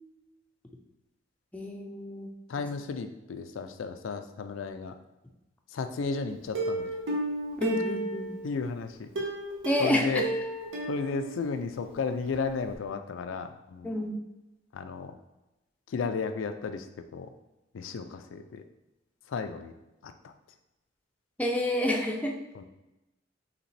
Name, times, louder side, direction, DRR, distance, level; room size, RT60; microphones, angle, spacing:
voice 1, 1.5-2.3 7.6-8.4 9.6-10.2 13.8-14.2 21.4-22.4, left 1 dB, 10° left, 1 dB, 0.5 m, -29 dB
voice 2, 2.5-4.9 5.7-6.9 8.4-9.1 9.8-10.2 10.9-13.9 14.7-15.1 15.9-16.8 17.1-17.3 17.7-18.6 19.3-19.7 20.0-20.3 22.5-22.6, left 5 dB, 90° left, 7 dB, 0.4 m, -33 dB
Plucked string instrument, 6.5-8.5 9.2-11.9 12.3-12.4 12.7-12.8, right 2 dB, 90° right, 0.9 m, -33 dB
5.0 x 2.9 x 3.2 m, 0.98 s
head